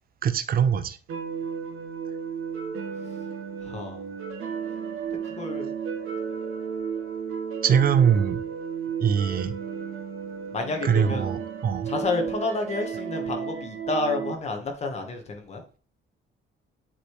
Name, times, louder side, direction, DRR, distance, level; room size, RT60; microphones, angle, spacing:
voice 1, 0.2-1.0 7.6-8.4 9.0-9.5 10.8-11.9, right 7 dB, 45° right, 0.6 m, -22 dB
sound 1, 1.1-14.3, right 7 dB, 85° right, 1.4 m, -33 dB
voice 2, 3.6-4.1 5.2-5.7 10.5-11.3 11.8-15.6, left 3 dB, 30° left, 1.3 m, -30 dB
7.7 x 3.3 x 4.8 m
cardioid pair, 170°, 21 cm